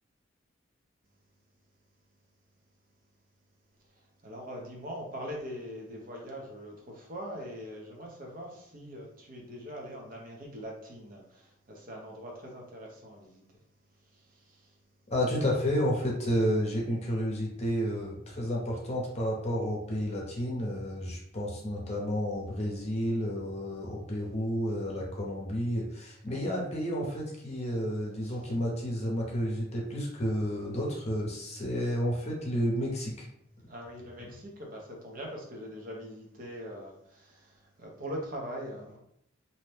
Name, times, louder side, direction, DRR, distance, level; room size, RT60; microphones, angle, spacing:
voice 1, 3.9-13.6 14.0-14.8 26.3-26.4 28.2-28.4 33.6-39.0, equal, 50° right, -1 dB, 0.7 m, -42 dB
voice 2, 15.1-33.3, equal, 35° left, -2 dB, 0.7 m, -31 dB
2.7 x 2.1 x 3.3 m, 0.73 s
head